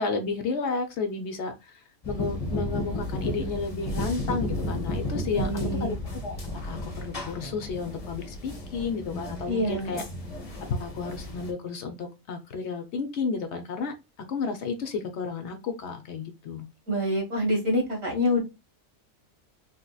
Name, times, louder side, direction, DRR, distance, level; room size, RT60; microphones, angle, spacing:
voice 1, 0.0-1.5 2.1-5.5 5.8-5.9 6.2-6.3 6.6-10.0 10.8-13.9 14.3-16.7, left 4 dB, 65° left, 0.9 m, -32 dB
sound 1, 2.0-11.5, left 1 dB, 30° left, 0.9 m, -33 dB
voice 2, 5.3-5.9 9.5-10.0 16.9-18.4, left 1 dB, 85° right, 1.9 m, -26 dB
3.7 x 2.9 x 2.3 m
omnidirectional pair, 1.4 m